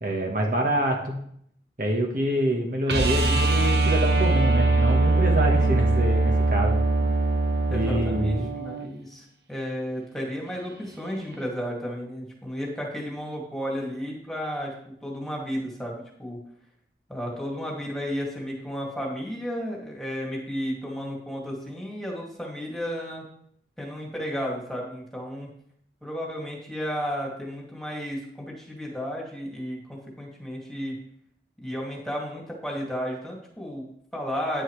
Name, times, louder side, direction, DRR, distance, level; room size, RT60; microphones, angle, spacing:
voice 1, 0.0-1.2 1.8-6.8 7.7-8.5, right 1 dB, 50° right, 1 dB, 1.4 m, -26 dB
sound 1, 2.9-8.8 11.3-11.4, right 2 dB, 70° right, 1.4 m, -22 dB
voice 2, 7.7-16.4 17.1-23.2 23.8-25.5 26.0-31.0 31.6-34.6, equal, ahead, -3 dB, 2.4 m, -33 dB
10.0 x 9.6 x 3.3 m, 0.68 s
head